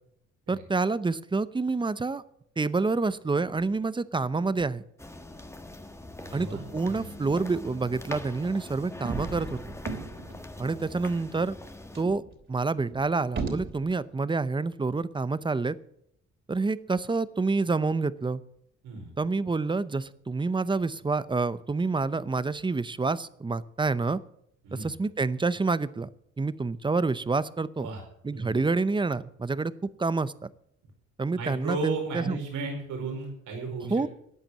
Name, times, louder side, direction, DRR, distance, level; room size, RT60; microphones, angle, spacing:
voice 1, 0.5-2.2 2.6-4.8 6.3-9.6 10.6-11.5 12.0-12.2 12.5-15.8 16.5-18.4 19.2-24.2 24.8-26.1 26.4-27.9 28.2-29.7 30.0-30.5 31.2-32.4 33.9-34.1, right 3 dB, 15° right, 16 dB, 0.7 m, -28 dB
sound 1, 5.0-12.0, left 1 dB, 10° left, 1.4 m, -42 dB
voice 2, 6.2-7.1 10.7-10.8 18.8-19.1 24.6-24.9 27.8-28.0 28.3-28.6 31.3-34.0, right 3 dB, 80° right, 1 dB, 4.8 m, -35 dB
sound 2, 8.6-10.5 11.0-11.1 11.3-11.5 11.9-13.9, right 4 dB, 40° right, 3.0 m, -36 dB
14.0 x 8.9 x 7.5 m, 0.73 s
cardioid pair, 90°, 30 cm